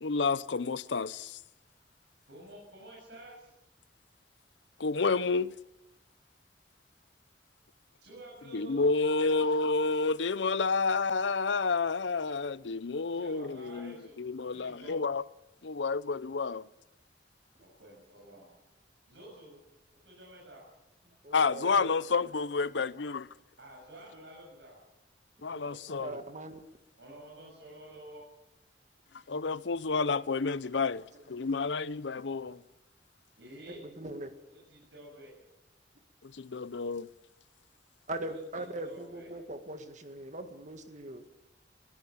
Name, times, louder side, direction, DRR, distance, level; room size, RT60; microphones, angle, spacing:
voice 1, 0.0-1.4 4.8-5.5 8.5-15.2 15.6-16.7 21.3-23.3 25.4-26.2 29.3-32.6 36.2-37.1, left 4 dB, 80° left, 0.7 m, -30 dB
voice 2, 2.3-3.5 8.0-9.5 13.2-15.0 17.6-18.6 19.1-19.6 20.0-20.6 23.6-24.8 27.0-28.3 33.4-33.8 34.5-35.4 38.2-39.4, right 1 dB, 80° right, 7.3 m, -50 dB
voice 3, 21.2-21.9 25.5-25.6 26.0-26.6 31.1-31.2 33.7-34.3 38.1-41.2, right 1 dB, 40° right, 1.9 m, -40 dB
22.0 x 15.5 x 8.6 m
head